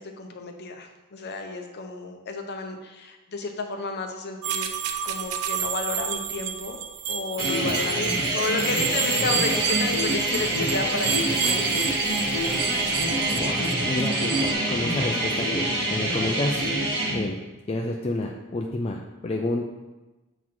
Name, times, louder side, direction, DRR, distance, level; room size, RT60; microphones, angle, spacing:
voice 1, 0.0-4.7 5.0-6.8 7.1-11.7, left 3 dB, 50° left, 4 dB, 0.7 m, -32 dB
sound 1, 4.4-14.5, right 7 dB, 85° right, 0.5 m, -30 dB
sound 2, 7.4-17.2, right 1 dB, 60° right, 1.7 m, -26 dB
sound 3, 8.2-17.1, left 1 dB, 20° right, 1.8 m, -41 dB
voice 2, 13.4-16.6 17.1-17.4 17.7-19.7, left 2 dB, 25° left, 1 dB, 0.4 m, -29 dB
7.2 x 4.0 x 4.6 m, 1.1 s
head